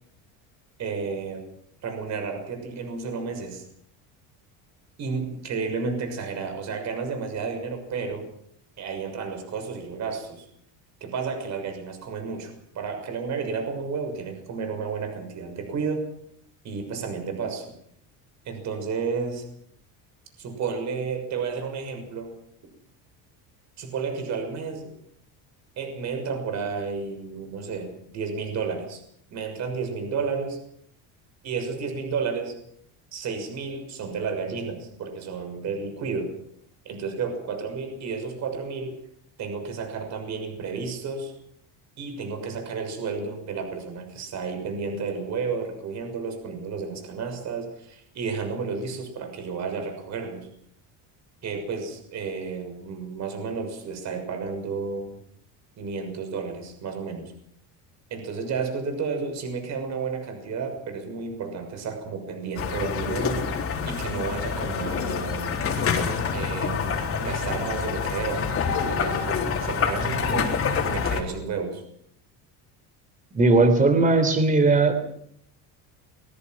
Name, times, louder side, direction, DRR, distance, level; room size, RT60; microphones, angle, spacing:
voice 1, 0.8-1.4 1.8-3.6 5.0-8.3 8.8-10.5 11.0-16.0 16.6-17.6 18.4-19.4 20.4-22.4 23.8-24.9 25.8-29.0 29.3-30.6 31.4-32.5 33.1-36.3 36.8-39.0 39.4-41.3 42.0-50.5 51.4-55.2 55.8-57.3 58.1-63.5 63.9-65.5 66.3-70.5 70.9-71.8, right 5 dB, 45° right, 6 dB, 6.6 m, -32 dB
sound 1, 62.6-71.2, left 6 dB, 35° left, 4.0 m, -27 dB
voice 2, 73.3-75.0, right 3 dB, 20° right, 9 dB, 3.6 m, -18 dB
24.0 x 21.5 x 6.1 m, 0.67 s
cardioid pair, 155°, 39 cm